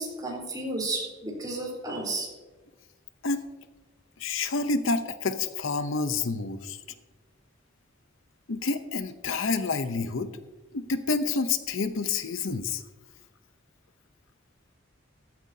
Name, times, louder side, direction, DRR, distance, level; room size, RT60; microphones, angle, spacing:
voice 1, 0.0-2.3, right 2 dB, 20° right, -2 dB, 3.9 m, -32 dB
voice 2, 4.2-6.8 8.5-10.3 10.7-12.8, left 4 dB, 75° left, 10 dB, 0.8 m, -28 dB
15.0 x 14.0 x 2.8 m, 1.2 s
head